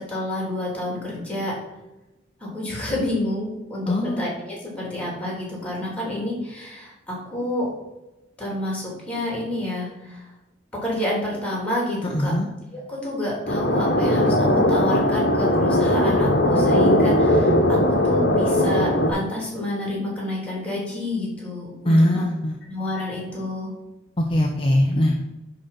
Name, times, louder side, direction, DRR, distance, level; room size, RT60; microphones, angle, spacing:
voice 1, 0.0-1.5 2.4-7.7 8.4-10.3 10.8-12.3 12.7-14.4 14.7-22.3 22.7-23.7, left 1 dB, 5° left, -3 dB, 3.3 m, -29 dB
voice 2, 3.9-4.3 12.1-12.5 21.8-22.6 24.2-25.1, left 1 dB, 25° left, 1 dB, 0.8 m, -20 dB
sound 1, 13.5-19.1, left 1 dB, 55° left, 1.3 m, -19 dB
10.5 x 4.0 x 5.9 m, 0.99 s
head